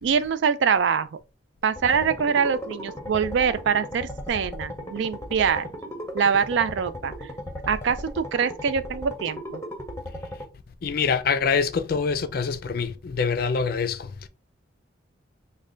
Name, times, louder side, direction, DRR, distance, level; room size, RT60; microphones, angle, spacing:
voice 1, 0.0-1.2 1.6-5.7 6.1-7.3 7.7-9.6, right 6 dB, 70° right, 0.3 m, -24 dB
sound 1, 1.8-10.4, left 1 dB, 15° left, 0.6 m, -36 dB
voice 2, 10.8-14.3, left 5 dB, 50° left, 0.4 m, -25 dB
3.2 x 2.2 x 3.7 m
head